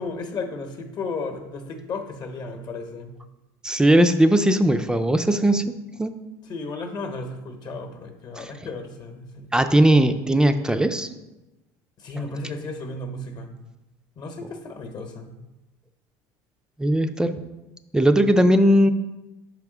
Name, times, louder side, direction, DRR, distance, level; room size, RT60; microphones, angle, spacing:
voice 1, 0.0-3.1 6.4-9.5 12.0-13.5 14.2-15.3, left 3 dB, 45° left, 5 dB, 0.9 m, -34 dB
voice 2, 3.6-5.6 6.0-6.2 8.4-8.5 9.5-11.1 16.8-17.3 17.9-18.9, right 1 dB, 5° right, 9 dB, 0.3 m, -18 dB
6.1 x 3.5 x 4.9 m, 1.0 s
supercardioid pair, 110°, 10 cm